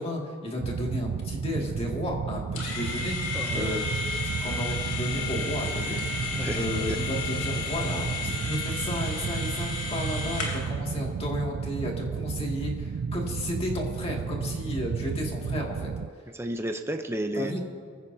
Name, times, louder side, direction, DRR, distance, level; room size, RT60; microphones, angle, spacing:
voice 1, 0.0-3.8 4.4-15.9 17.3-17.6, left 1 dB, 25° left, -1 dB, 2.2 m, -33 dB
sound 1, 0.6-16.1, right 6 dB, 70° right, 0.4 m, -32 dB
sound 2, 2.6-10.7, left 4 dB, 70° left, 3.2 m, -33 dB
voice 2, 6.3-7.0 16.3-17.6, right 1 dB, 10° right, 5 dB, 0.6 m, -32 dB
24.5 x 15.5 x 2.8 m, 2.1 s
head